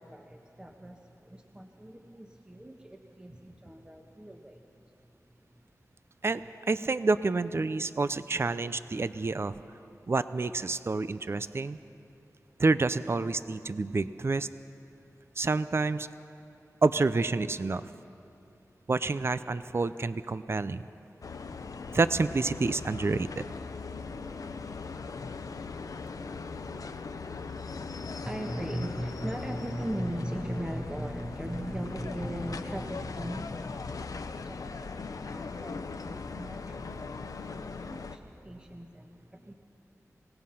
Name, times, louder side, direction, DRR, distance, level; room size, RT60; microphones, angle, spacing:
voice 1, 0.0-4.6 27.6-39.5, right 1 dB, 15° right, 2 dB, 1.2 m, -39 dB
voice 2, 6.7-9.6 10.1-11.8 12.6-14.5 15.4-16.1 16.8-17.8 18.9-20.8 21.9-23.4, right 3 dB, 45° right, 14 dB, 0.5 m, -28 dB
sound 1, 21.2-38.2, left 4 dB, 80° left, 0.8 m, -39 dB
27.0 x 17.5 x 5.7 m, 2.8 s
wide cardioid pair, 75°, 6 cm